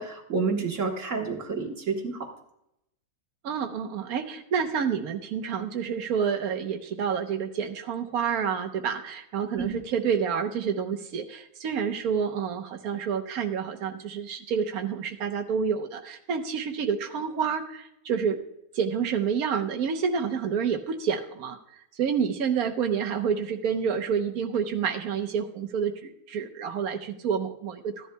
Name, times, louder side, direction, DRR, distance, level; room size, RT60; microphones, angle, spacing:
voice 1, 0.0-2.3 9.6-9.8, right 4 dB, 60° right, 2 dB, 1.6 m, -29 dB
voice 2, 3.4-18.4 18.7-21.6 22.0-28.1, right 7 dB, 80° right, 4 dB, 1.4 m, -28 dB
15.0 x 11.0 x 2.2 m, 0.81 s
omnidirectional pair, 1.5 m